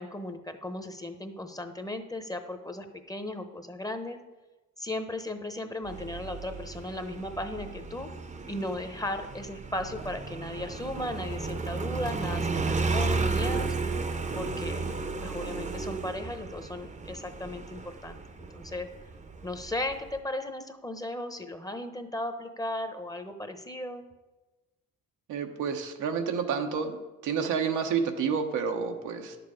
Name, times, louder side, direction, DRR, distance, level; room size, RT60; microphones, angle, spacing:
voice 1, 0.0-4.2 4.8-8.1 8.5-13.7 14.4-14.8 15.2-18.2 18.5-18.9 19.4-24.0, left 1 dB, 10° left, 7 dB, 0.9 m, -36 dB
Motorcycle, 5.9-20.2, right 3 dB, 25° right, 0.8 m, -33 dB
voice 2, 25.3-29.4, right 6 dB, 85° right, 4 dB, 1.0 m, -29 dB
10.0 x 7.0 x 4.9 m, 1.1 s
cardioid pair, 90°, 30 cm